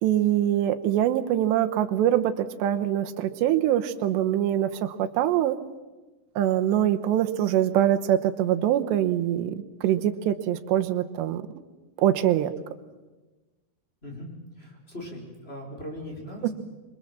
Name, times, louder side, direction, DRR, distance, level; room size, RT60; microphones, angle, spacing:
voice 1, 0.0-5.6 6.4-11.4 12.0-12.5 16.4-16.5, right 11 dB, 85° right, 8 dB, 3.2 m, -24 dB
voice 2, 14.0-14.3 14.6-16.5, left 1 dB, 15° left, -1 dB, 4.8 m, -39 dB
26.5 x 23.5 x 7.5 m, 1.2 s
omnidirectional pair, 4.8 m